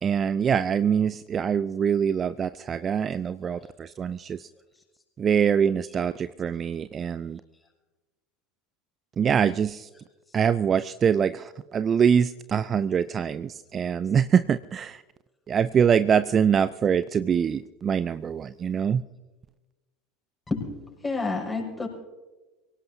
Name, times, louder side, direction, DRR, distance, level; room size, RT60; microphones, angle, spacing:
voice 1, 0.0-4.5 5.2-7.4 9.2-9.9 10.3-15.0 15.5-19.0, right 7 dB, 30° right, 15 dB, 0.4 m, -24 dB
voice 2, 21.0-21.9, left 3 dB, 15° left, -1 dB, 6.2 m, -28 dB
25.5 x 17.5 x 2.8 m, 1.2 s
figure-of-eight pair, 75°, 0 cm